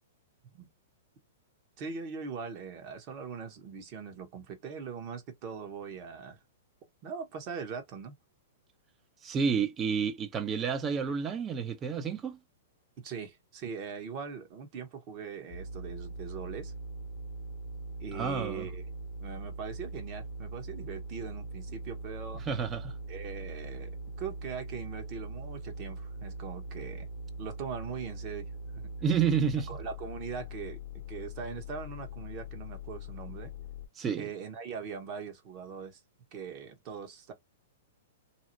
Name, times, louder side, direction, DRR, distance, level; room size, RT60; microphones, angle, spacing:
voice 1, 1.8-6.4 7.0-8.1 13.0-16.7 18.0-18.8 19.2-22.4 23.1-27.1 27.4-28.5 28.7-28.9 29.7-33.5 34.2-36.0 36.3-37.3, right 6 dB, 40° right, 1.0 m, -41 dB
voice 2, 9.2-12.4 18.1-18.7 22.5-22.9 29.0-29.7 34.0-34.3, right 6 dB, 25° right, 0.5 m, -30 dB
sound 1, 15.5-33.9, right 1 dB, 55° left, 0.7 m, -41 dB
2.7 x 2.1 x 2.6 m
hypercardioid pair, 120°, 0 cm